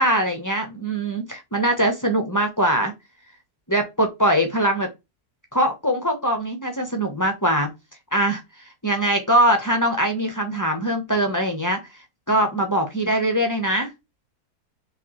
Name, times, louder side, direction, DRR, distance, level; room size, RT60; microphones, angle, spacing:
voice 1, 0.0-2.9 3.7-4.9 5.5-7.7 8.1-8.4 8.8-11.8 12.3-13.9, right 1 dB, 15° left, 3 dB, 0.6 m, -22 dB
4.5 x 3.5 x 3.0 m, 0.22 s
omnidirectional pair, 1.7 m